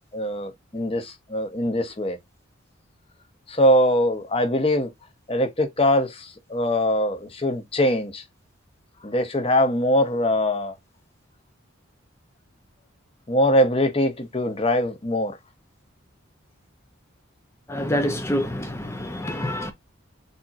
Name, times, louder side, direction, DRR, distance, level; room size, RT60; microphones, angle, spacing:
voice 1, 0.1-2.2 3.5-4.9 5.3-8.2 9.0-10.7 13.3-15.3, left 1 dB, 30° left, 1.0 m, -22 dB
voice 2, 17.7-19.7, equal, 15° left, 0.6 m, -26 dB
6.7 x 2.9 x 2.5 m
head